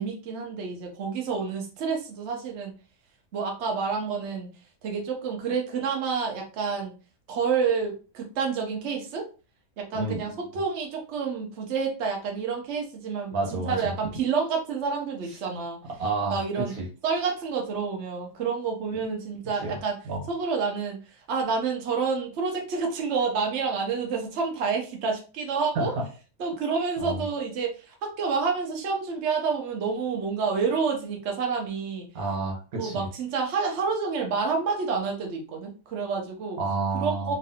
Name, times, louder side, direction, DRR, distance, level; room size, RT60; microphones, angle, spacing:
voice 1, 0.0-2.7 3.3-4.5 4.8-6.9 7.3-9.3 9.8-15.8 16.3-16.8 17.0-20.0 20.3-21.0 21.3-25.9 26.4-32.1 32.8-36.6 36.9-37.3, right 5 dB, 60° right, 1 dB, 0.9 m, -29 dB
voice 2, 9.9-10.4 13.3-13.9 16.0-16.4 16.8-16.9 19.6-19.8 20.1-20.2 25.8-26.0 27.0-27.2 32.2-33.1 36.6-37.4, right 3 dB, 80° right, -1 dB, 1.6 m, -29 dB
3.0 x 2.6 x 2.8 m, 0.34 s
omnidirectional pair, 1.5 m